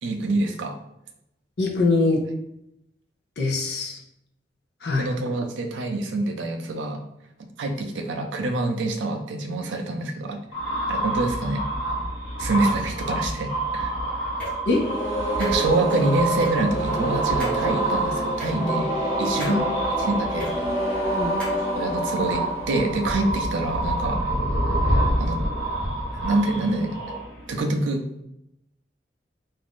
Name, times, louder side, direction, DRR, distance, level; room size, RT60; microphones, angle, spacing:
voice 1, 0.0-0.7 4.9-7.0 7.6-10.4 10.9-11.6 12.4-14.0 15.4-18.9 19.2-19.6 20.0-20.5 21.7-24.2 24.8-25.4 26.1-27.0 27.5-28.0, right 2 dB, 85° right, 5 dB, 0.4 m, -26 dB
voice 2, 1.6-2.2 3.4-4.0 4.8-5.1 14.7-14.8 19.5-19.6 21.1-21.4, left 3 dB, 65° left, 0 dB, 0.6 m, -22 dB
sound 1, 10.5-27.6, right 1 dB, 90° left, 0.9 m, -28 dB
sound 2, 14.4-14.5 15.4-15.9 16.4-16.5 17.4-17.6 18.4-18.5 19.4-19.6 20.4-20.5 21.4-21.6, equal, 5° left, 0.8 m, -35 dB
sound 3, 14.7-23.6, equal, 25° right, 0.9 m, -28 dB
2.5 x 2.4 x 3.5 m, 0.81 s
head